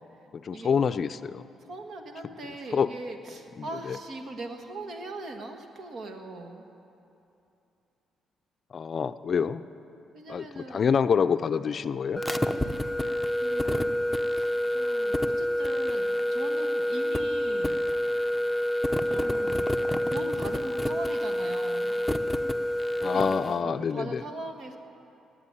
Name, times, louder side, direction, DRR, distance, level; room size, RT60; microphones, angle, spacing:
voice 1, 0.3-1.4 2.7-2.9 3.6-4.0 8.7-9.6 10.3-12.2 23.0-24.2, left 6 dB, 50° left, 12 dB, 0.4 m, -27 dB
voice 2, 1.7-6.7 10.1-10.9 13.4-18.0 19.1-19.7 20.1-21.9 23.0-23.4 23.6-24.8, right 2 dB, 60° right, 5 dB, 1.6 m, -40 dB
sound 1, 12.2-23.5, equal, 5° left, 0.7 m, -27 dB
17.5 x 8.0 x 9.8 m, 2.8 s
cardioid pair, 90°, 0 cm